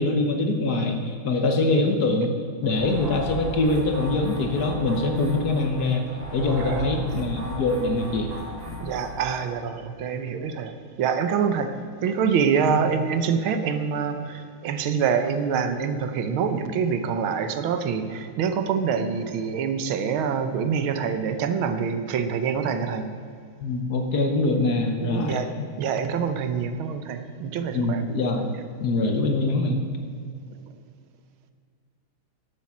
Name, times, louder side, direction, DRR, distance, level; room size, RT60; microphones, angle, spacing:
voice 1, 0.0-2.3 2.6-6.1 6.3-8.3 12.8-12.9 23.6-25.7 27.7-28.6 28.8-29.8, left 2 dB, 55° left, 4 dB, 1.3 m, -24 dB
sound 1, 2.6-9.5, equal, 45° right, 4.0 m, -35 dB
voice 2, 6.6-7.1 8.8-23.3 25.0-28.0, right 6 dB, 75° right, 9 dB, 1.6 m, -26 dB
10.5 x 8.8 x 7.2 m, 2.2 s
omnidirectional pair, 2.4 m